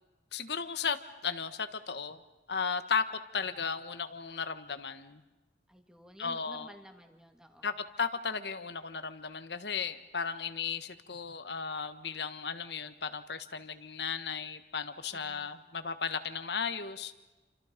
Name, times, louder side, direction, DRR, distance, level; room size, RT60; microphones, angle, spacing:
voice 1, 0.3-2.2 2.5-3.0 3.3-5.2 6.2-6.7 7.6-17.1, left 6 dB, 70° left, 11 dB, 1.4 m, -35 dB
voice 2, 5.7-7.7 15.1-15.5, equal, 5° right, 5 dB, 2.0 m, -53 dB
30.0 x 26.5 x 5.2 m, 1.1 s
head